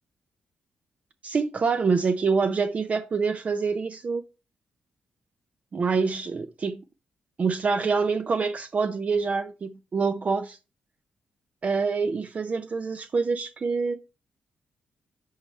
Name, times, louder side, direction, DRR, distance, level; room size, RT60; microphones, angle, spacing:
voice 1, 1.2-4.2 5.7-6.8 7.4-10.6 11.6-14.0, right 5 dB, 45° right, 0.5 m, -26 dB
10.0 x 3.4 x 4.3 m
cardioid pair, 80°, 3 cm